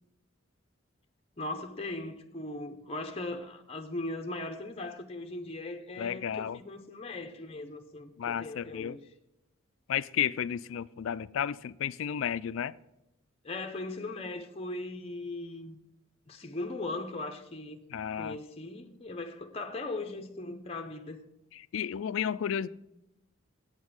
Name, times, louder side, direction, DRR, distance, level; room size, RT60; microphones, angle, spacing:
voice 1, 1.4-9.0 13.4-15.8 16.3-17.8 18.1-21.2, left 2 dB, 30° left, 0.7 m, -39 dB
voice 2, 6.0-6.6 8.2-9.0 9.9-12.7 17.9-18.4 21.5-22.7, left 8 dB, 70° left, 0.3 m, -32 dB
8.0 x 7.3 x 6.2 m
head